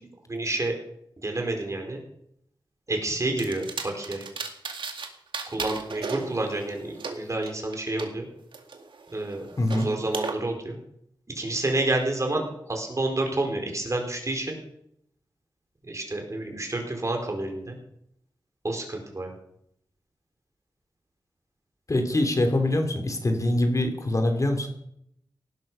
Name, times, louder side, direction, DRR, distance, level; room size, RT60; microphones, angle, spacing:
voice 1, 0.3-0.8 1.2-2.0 2.9-4.3 5.5-8.3 9.1-9.5 9.8-10.8 11.3-14.6 15.8-17.8 18.6-19.3, right 2 dB, 40° right, 3 dB, 4.4 m, -29 dB
sound 1, 3.4-5.1 5.3-8.1 8.5-10.3, right 4 dB, 90° right, 2.1 m, -36 dB
voice 2, 9.6-9.9 21.9-24.7, left 1 dB, 40° left, 5 dB, 2.9 m, -24 dB
18.0 x 12.0 x 5.6 m, 0.75 s
wide cardioid pair, 75°, 8 cm